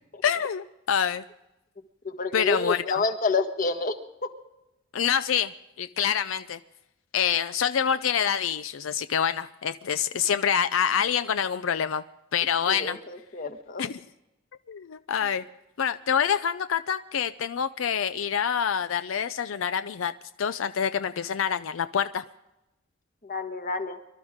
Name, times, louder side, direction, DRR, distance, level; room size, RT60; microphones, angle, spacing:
voice 1, 0.2-1.2 2.3-3.0 4.9-5.5 5.8-6.6 7.1-12.0 12.3-13.0 13.8-14.0 14.7-15.4 15.8-20.1 20.4-22.2, left 8 dB, 80° left, 12 dB, 0.5 m, -26 dB
voice 2, 2.0-4.0 4.2-4.3 12.7-13.8 23.2-24.0, left 3 dB, 45° left, 8 dB, 1.3 m, -29 dB
24.5 x 12.5 x 3.6 m, 0.94 s
head